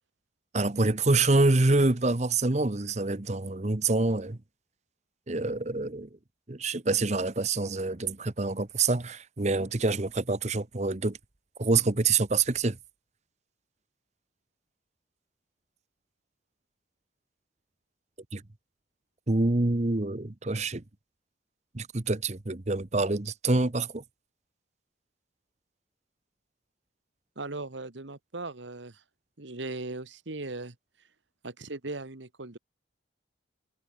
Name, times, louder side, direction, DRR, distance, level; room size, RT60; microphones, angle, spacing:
voice 1, 0.5-4.4 5.3-6.1 6.5-11.2 11.6-12.8 18.3-18.4 19.3-20.8 21.7-24.0, right 3 dB, 35° right, 1.0 m, -26 dB
voice 2, 27.3-29.0 29.4-30.7 31.4-32.6, right 2 dB, 70° right, 1.6 m, -38 dB
head